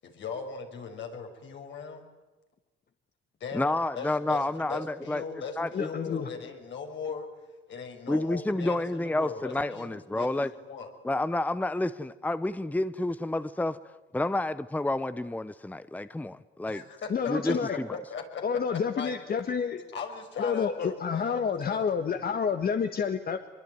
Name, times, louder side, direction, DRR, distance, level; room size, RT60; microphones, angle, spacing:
voice 1, 0.0-2.1 3.4-10.9 16.6-19.2 19.5-19.6 19.9-22.2, left 5 dB, 70° left, 5.8 m, -39 dB
voice 2, 3.5-5.2 5.6-5.7 8.1-10.5 11.0-13.8 14.1-16.8 17.3-17.5, left 2 dB, 10° left, 0.8 m, -29 dB
voice 3, 5.7-6.3 17.1-17.8 18.4-19.8 20.4-23.5, left 6 dB, 50° left, 1.6 m, -29 dB
25.0 x 22.5 x 9.5 m
cardioid pair, 90°, 20 cm